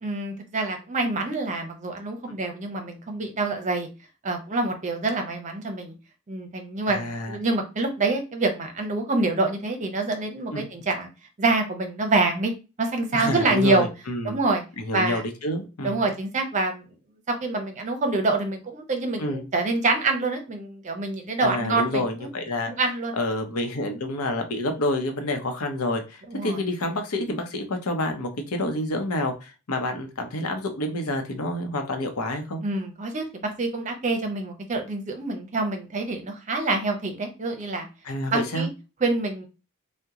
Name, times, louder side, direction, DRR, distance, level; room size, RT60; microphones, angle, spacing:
voice 1, 0.0-3.9 4.2-5.9 6.3-11.1 11.4-12.5 12.8-13.8 14.2-14.6 14.9-15.2 15.8-16.8 17.3-22.3 22.7-23.1 26.3-26.6 32.6-37.9 38.3-38.7 39.0-39.5, right 3 dB, 35° right, 4 dB, 0.6 m, -26 dB
voice 2, 6.9-7.4 10.5-10.6 13.1-14.4 14.8-16.0 19.2-19.5 21.4-22.7 23.1-32.6 38.0-38.7, left 1 dB, 80° left, 5 dB, 0.7 m, -28 dB
2.9 x 2.1 x 3.6 m, 0.30 s
head